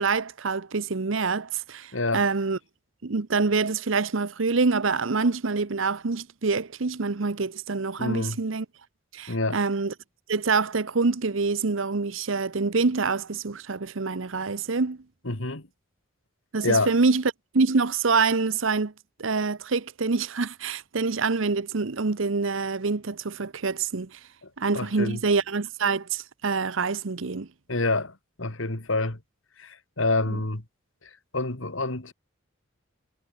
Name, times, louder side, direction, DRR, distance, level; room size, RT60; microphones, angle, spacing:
voice 1, 0.0-2.6 3.0-8.7 9.1-9.9 10.3-15.0 16.5-17.2 17.5-18.9 19.2-24.2 24.6-27.5 30.3-30.4, right 4 dB, 70° right, 0.9 m, -26 dB
voice 2, 1.9-2.3 8.0-8.4 9.3-9.6 15.3-15.6 16.6-16.9 24.7-25.2 27.7-29.2 29.6-30.6 31.3-32.1, left 2 dB, 70° left, 2.4 m, -27 dB
head